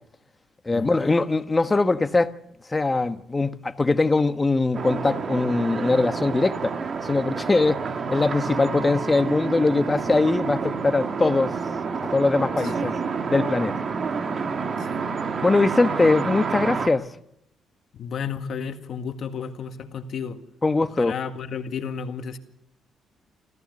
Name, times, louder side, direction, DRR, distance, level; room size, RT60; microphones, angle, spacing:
voice 1, 0.6-2.3 2.7-6.8 7.0-7.8 8.1-11.5 12.0-12.9 13.3-13.7 15.4-17.1 20.6-21.1, left 3 dB, 25° left, 1.3 m, -21 dB
sound 1, 4.7-16.9, right 5 dB, 50° right, 1.8 m, -29 dB
voice 2, 17.9-20.4 20.8-22.4, left 6 dB, 65° left, 1.8 m, -33 dB
26.5 x 15.0 x 6.7 m
supercardioid pair, 65°, 0 cm